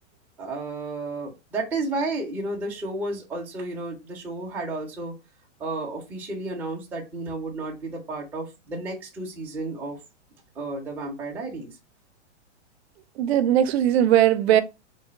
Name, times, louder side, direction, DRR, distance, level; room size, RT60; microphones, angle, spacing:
voice 1, 0.4-5.1 5.6-10.0 10.6-11.7, right 2 dB, 5° right, 0.4 m, -32 dB
voice 2, 13.2-14.6, right 11 dB, 65° right, 0.5 m, -19 dB
3.2 x 2.1 x 3.8 m
hypercardioid pair, 150°, 35 cm